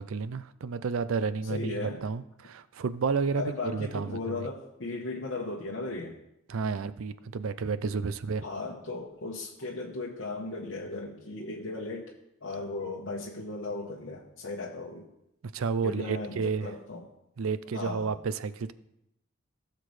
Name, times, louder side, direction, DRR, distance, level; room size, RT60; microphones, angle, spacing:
voice 1, 0.0-4.5 6.5-8.4 15.5-16.7 17.4-18.7, right 5 dB, 85° right, 15 dB, 0.5 m, -31 dB
voice 2, 1.5-2.0 3.3-6.2 8.4-12.1 12.4-15.1 15.8-17.0 17.7-18.1, left 2 dB, 65° left, -3 dB, 1.1 m, -36 dB
16.5 x 6.7 x 3.2 m, 0.81 s
head